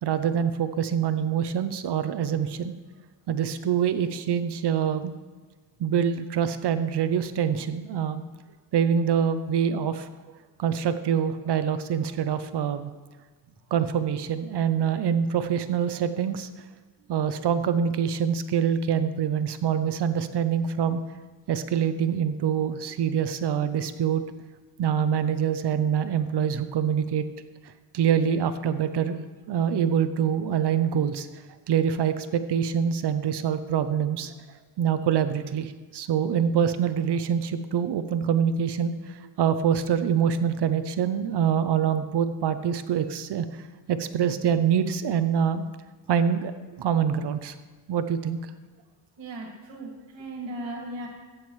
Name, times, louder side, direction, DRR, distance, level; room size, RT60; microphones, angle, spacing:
voice 1, 0.0-2.7 3.3-5.1 5.8-8.2 8.7-10.1 10.6-12.9 13.7-16.5 17.1-21.0 21.5-24.2 24.8-27.2 27.9-31.3 31.7-34.3 34.8-43.5 43.9-45.7 46.1-46.5 46.8-47.5 47.9-48.4, right 8 dB, 65° right, 11 dB, 0.7 m, -25 dB
voice 2, 49.2-51.1, right 1 dB, 90° right, -1 dB, 2.2 m, -37 dB
15.0 x 8.9 x 3.1 m, 1.4 s
cardioid pair, 105°, 44 cm